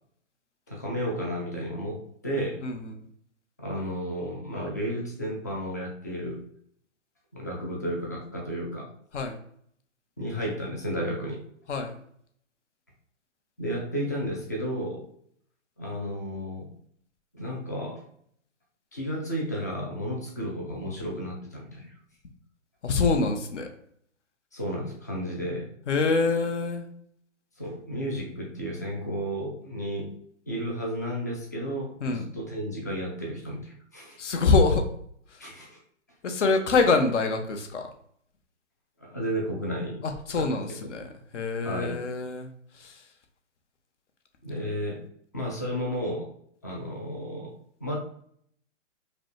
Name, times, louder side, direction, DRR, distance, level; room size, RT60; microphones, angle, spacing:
voice 1, 0.7-2.6 3.6-6.4 7.3-8.9 10.2-11.4 13.6-15.0 15.8-16.7 17.3-18.0 18.9-21.9 24.5-25.7 27.6-30.1 30.5-34.2 35.4-35.8 39.0-40.0 40.3-40.6 41.6-42.0 44.4-45.0 45.3-46.3 46.6-47.5 47.8-48.0, equal, 15° left, -2 dB, 0.3 m, -32 dB
voice 2, 2.6-3.0 9.1-9.4 11.7-12.0 22.8-23.7 25.9-26.9 32.0-32.3 34.2-34.8 35.3-35.5 36.2-37.9 40.0-42.5 42.7-43.1, left 4 dB, 65° left, 5 dB, 1.0 m, -25 dB
5.1 x 2.2 x 3.1 m, 0.65 s
hypercardioid pair, 145°, 38 cm